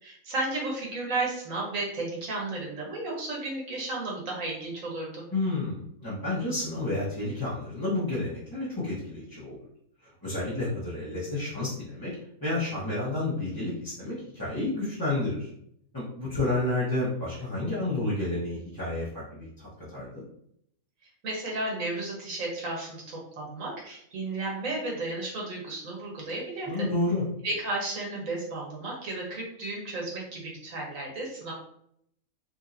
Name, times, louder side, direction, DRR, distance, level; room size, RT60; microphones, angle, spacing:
voice 1, 0.0-5.2 21.2-26.9 27.4-31.5, right 2 dB, 65° right, -3 dB, 1.8 m, -33 dB
voice 2, 5.3-9.6 10.2-12.1 12.4-15.5 15.9-20.2 26.7-27.2, left 2 dB, 15° left, -11 dB, 1.4 m, -30 dB
4.4 x 3.5 x 2.8 m, 0.69 s
omnidirectional pair, 1.5 m